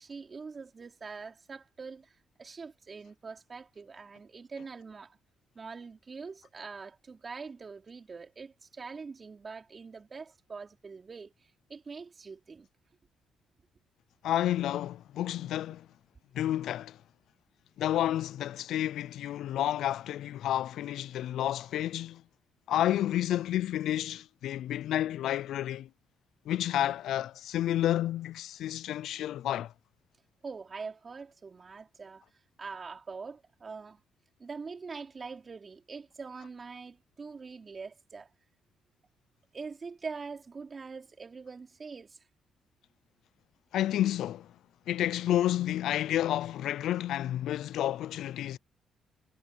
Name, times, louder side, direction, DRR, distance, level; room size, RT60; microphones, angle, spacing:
voice 1, 0.0-5.2 5.5-12.7 30.4-32.2 32.6-34.0 34.4-38.3 39.5-42.2, right 4 dB, 35° right, 5.0 m, -44 dB
voice 2, 14.2-15.9 16.3-17.0 17.8-22.2 22.7-25.9 26.5-29.7 43.7-44.5 44.9-48.6, left 12 dB, 80° left, 0.5 m, -30 dB
cardioid pair, 90°, 0 cm